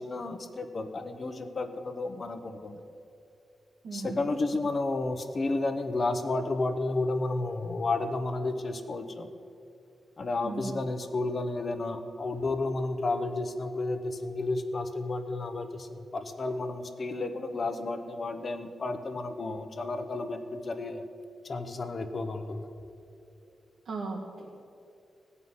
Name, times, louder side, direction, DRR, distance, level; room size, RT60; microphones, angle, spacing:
voice 1, 0.0-2.8 3.9-9.3 10.2-21.0 21.4-22.7, left 2 dB, 35° left, 7 dB, 0.9 m, -32 dB
voice 2, 3.8-4.3 10.4-10.7 23.8-24.5, right 3 dB, 70° right, -3 dB, 1.5 m, -37 dB
17.0 x 5.6 x 9.6 m, 2.5 s
wide cardioid pair, 155°, 0 cm